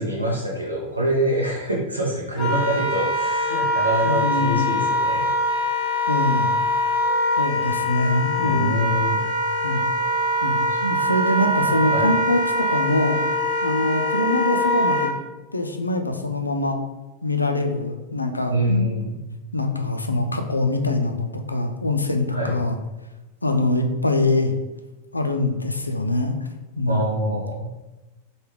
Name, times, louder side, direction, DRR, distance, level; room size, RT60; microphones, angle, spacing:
voice 1, 0.0-5.3 8.4-9.2 10.7-10.8 11.9-12.2 18.5-19.2 22.3-22.6 26.9-27.7, equal, 85° right, -3 dB, 0.5 m, -25 dB
Wind instrument woodwind instrument, 2.4-15.1, left 1 dB, 30° left, 1.0 m, -23 dB
voice 2, 4.0-4.7 6.1-6.5 7.4-8.9 9.6-9.8 10.4-13.2 13.6-15.1 15.5-16.8 17.2-18.9 19.5-22.8 23.4-24.5 25.1-26.4 26.8-27.4, left 2 dB, 80° left, 5 dB, 0.3 m, -24 dB
3.3 x 2.2 x 3.2 m, 1.1 s
figure-of-eight pair, 90°, 0 cm